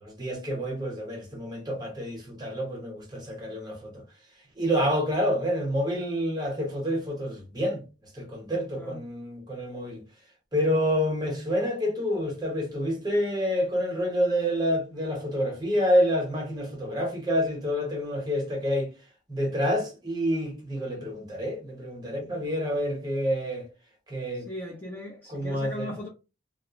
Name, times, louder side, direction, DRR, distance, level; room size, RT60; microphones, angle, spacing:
voice 1, 0.0-4.0 4.6-7.8 8.1-10.0 10.5-18.9 19.3-23.7 24.1-24.5 25.3-25.9, equal, 20° right, 0.8 m, -28 dB
voice 2, 24.3-26.1, left 1 dB, 10° left, 0.4 m, -38 dB
2.3 x 2.1 x 2.9 m
head